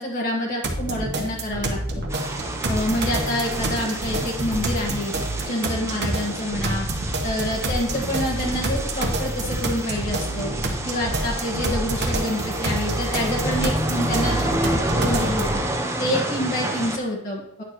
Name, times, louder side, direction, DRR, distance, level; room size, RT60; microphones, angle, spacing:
voice 1, 0.0-1.8 2.7-5.1 5.4-6.9 7.2-10.5 10.8-15.5 16.0-17.6, left 1 dB, 50° left, -5 dB, 1.5 m, -27 dB
sound 1, 0.6-15.6, right 1 dB, 55° right, 1.1 m, -28 dB
sound 2, 2.1-17.0, right 1 dB, 15° right, 0.8 m, -29 dB
9.5 x 6.8 x 3.0 m, 0.75 s
head